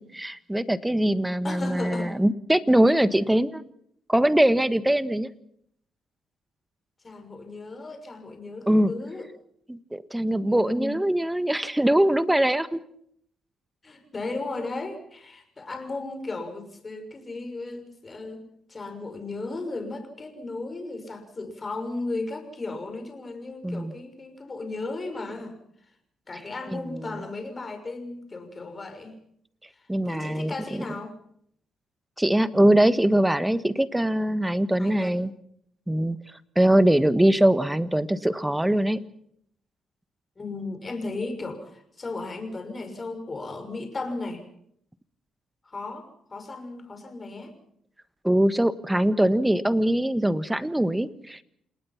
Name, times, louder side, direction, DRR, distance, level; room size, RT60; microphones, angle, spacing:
voice 1, 0.0-3.6 4.1-5.3 8.7-8.9 9.7-12.8 23.6-23.9 26.7-27.2 29.9-30.5 32.2-35.3 35.9-36.2 36.5-39.0 48.2-51.4, right 1 dB, 5° right, 13 dB, 1.4 m, -22 dB
voice 2, 1.4-2.2 7.0-9.3 10.4-10.9 13.8-25.6 26.3-29.2 29.7-31.1 34.8-35.2 40.4-44.5 45.6-47.5, left 3 dB, 30° left, 6 dB, 6.2 m, -35 dB
29.0 x 19.0 x 5.9 m, 0.69 s
cardioid pair, 90°, 0 cm